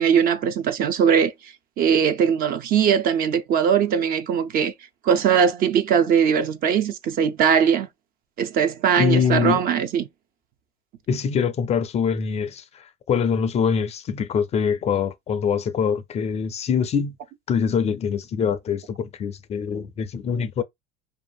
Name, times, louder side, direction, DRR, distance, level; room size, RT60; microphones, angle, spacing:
voice 1, 0.0-1.3 1.8-4.7 5.0-7.9 8.4-10.1, right 7 dB, 45° right, 0.5 m, -20 dB
voice 2, 9.0-9.7 11.1-17.2 17.5-20.6, left 7 dB, 30° left, 0.4 m, -24 dB
2.6 x 2.5 x 2.2 m
hypercardioid pair, 90°, 21 cm